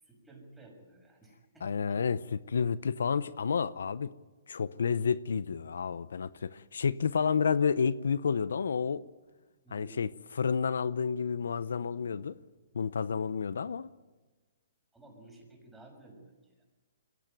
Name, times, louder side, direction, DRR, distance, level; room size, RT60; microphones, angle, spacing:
voice 1, 0.0-2.0 9.6-10.0 14.9-16.6, right 2 dB, 5° right, 6.3 m, -54 dB
voice 2, 1.6-4.1 4.5-9.0 9.7-12.4 12.7-13.9, left 6 dB, 80° left, 0.7 m, -30 dB
22.5 x 17.0 x 9.1 m
hypercardioid pair, 150°, 0 cm